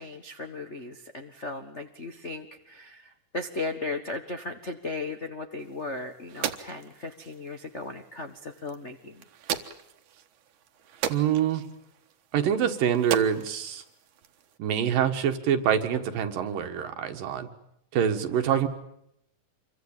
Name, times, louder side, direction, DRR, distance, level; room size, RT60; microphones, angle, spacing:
voice 1, 0.0-9.2, left 3 dB, 60° left, 4 dB, 0.7 m, -36 dB
sound 1, 5.6-14.6, right 9 dB, 65° right, 2.6 m, -38 dB
voice 2, 11.1-11.6 12.3-13.8 14.6-17.5 17.9-18.7, right 9 dB, 85° right, 7 dB, 3.5 m, -25 dB
27.0 x 23.5 x 9.0 m, 0.79 s
omnidirectional pair, 3.8 m